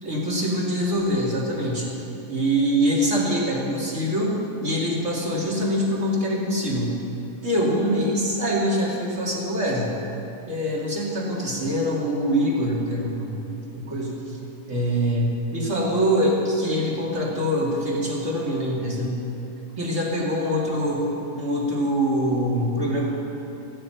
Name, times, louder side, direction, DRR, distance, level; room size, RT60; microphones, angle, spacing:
voice 1, 0.0-1.9 2.3-7.0 7.4-9.9 10.5-13.5 13.7-14.4 14.7-19.2 19.8-23.0, equal, 25° right, -4 dB, 2.1 m, -24 dB
14.5 x 6.7 x 9.0 m, 2.8 s
omnidirectional pair, 3.6 m